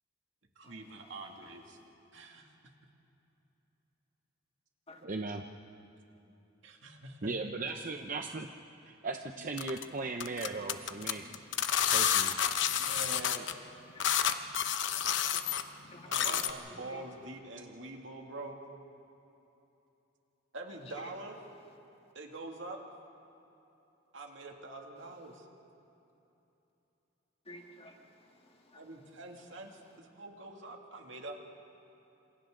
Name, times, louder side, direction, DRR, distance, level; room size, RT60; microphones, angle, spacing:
voice 1, 0.6-1.8 2.1-2.5 6.6-7.3 12.8-13.5 16.1-18.6 20.5-21.4 22.1-22.8 24.1-25.5 28.8-31.4, right 2 dB, 70° right, 1 dB, 2.5 m, -45 dB
voice 2, 5.0-5.4 7.2-8.5 8.8-11.2 11.9-12.4, right 3 dB, 45° right, 4 dB, 0.8 m, -37 dB
sound 1, 9.6-9.8 10.2-13.5 14.0-15.6 16.1-16.5, left 9 dB, 65° left, 0.9 m, -29 dB
voice 3, 15.3-16.3 16.9-17.0 27.5-28.0 28.7-28.8, left 1 dB, 30° left, 2 dB, 2.0 m, -52 dB
28.0 x 27.5 x 3.9 m, 2.9 s
head